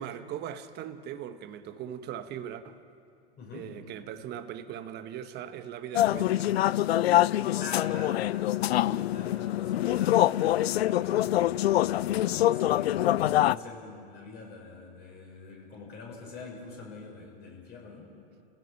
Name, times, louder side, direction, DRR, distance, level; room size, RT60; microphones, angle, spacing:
voice 1, 0.0-2.8 3.5-6.5, right 9 dB, 35° right, 1.3 m, -39 dB
voice 2, 3.4-3.8 7.6-8.3 8.8-11.5 12.3-18.1, left 3 dB, 35° left, 5.9 m, -44 dB
sound 1, 5.9-13.6, left 13 dB, 85° left, 0.5 m, -25 dB
30.0 x 16.5 x 6.0 m
hypercardioid pair, 125°, 30 cm